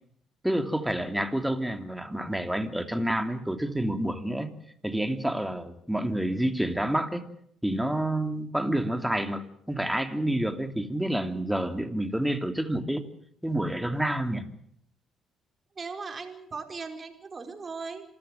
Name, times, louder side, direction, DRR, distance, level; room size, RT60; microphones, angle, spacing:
voice 1, 0.4-4.5 4.8-7.3 7.6-13.0 13.4-14.5, right 1 dB, 5° right, 7 dB, 2.9 m, -28 dB
voice 2, 15.7-18.0, right 4 dB, 35° right, 6 dB, 4.9 m, -38 dB
27.0 x 14.5 x 9.2 m, 0.70 s
supercardioid pair, 65°, 0 cm